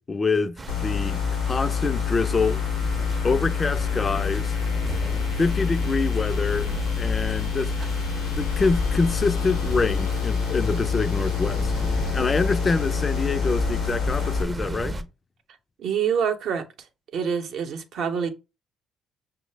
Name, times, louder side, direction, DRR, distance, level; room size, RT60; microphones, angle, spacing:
voice 1, 0.1-2.6 3.2-4.6 5.4-7.9 8.2-11.7 12.1-15.1, left 4 dB, 35° left, 0.3 m, -26 dB
sound 1, 0.6-15.0, right 2 dB, 30° right, 0.5 m, -33 dB
sound 2, 0.7-14.4, left 7 dB, 90° left, 0.6 m, -27 dB
voice 2, 15.8-16.9 17.1-18.3, right 7 dB, 70° right, 0.6 m, -26 dB
5.5 x 2.0 x 3.2 m
supercardioid pair, 60°, 0 cm